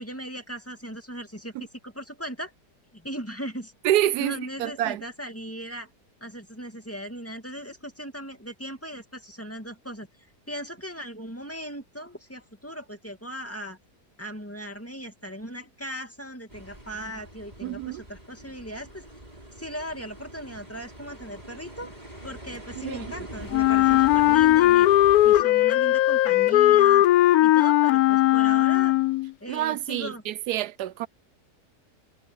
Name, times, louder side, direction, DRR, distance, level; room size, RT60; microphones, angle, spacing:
voice 1, 0.0-1.5 1.8-2.5 2.9-3.7 4.2-5.9 6.2-10.1 10.5-13.8 14.2-19.0 19.6-21.9 22.2-24.9 25.2-27.1 27.4-29.0 29.4-30.2, equal, 10° left, 2.4 m, -38 dB
voice 2, 3.8-5.0 17.6-18.0 22.8-23.3 29.5-31.1, right 13 dB, 75° right, 1.1 m, -27 dB
sound 1, 16.5-25.4, right 1 dB, 25° right, 7.3 m, -43 dB
Wind instrument woodwind instrument, 23.5-29.3, left 15 dB, 70° left, 1.0 m, -18 dB
omnidirectional pair, 1.8 m